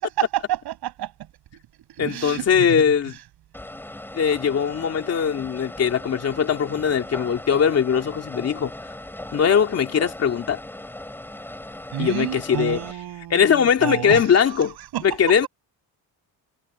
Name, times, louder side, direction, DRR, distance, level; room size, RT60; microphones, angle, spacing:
voice 1, 0.2-1.1 1.9-2.8 11.9-15.5, right 13 dB, 75° right, 7.8 m, -30 dB
voice 2, 2.0-3.1 4.1-8.7 9.3-10.6 12.0-12.8 13.3-14.7 15.0-15.5, left 7 dB, 40° left, 3.0 m, -20 dB
sound 1, 3.5-12.9, left 1 dB, 5° left, 4.5 m, -38 dB
cardioid pair, 175°, 39 cm